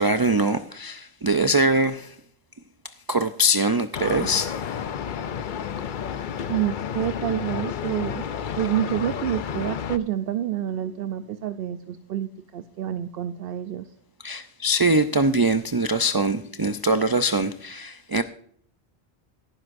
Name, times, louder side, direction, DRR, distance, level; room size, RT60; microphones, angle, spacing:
voice 1, 0.0-2.1 3.1-4.8 14.2-18.2, right 1 dB, 35° right, 0.3 m, -22 dB
sound 1, 3.9-10.0, left 8 dB, 55° left, 0.7 m, -31 dB
voice 2, 6.5-8.3 8.6-13.9, right 11 dB, 65° right, 0.7 m, -28 dB
17.0 x 10.0 x 2.6 m
omnidirectional pair, 1.1 m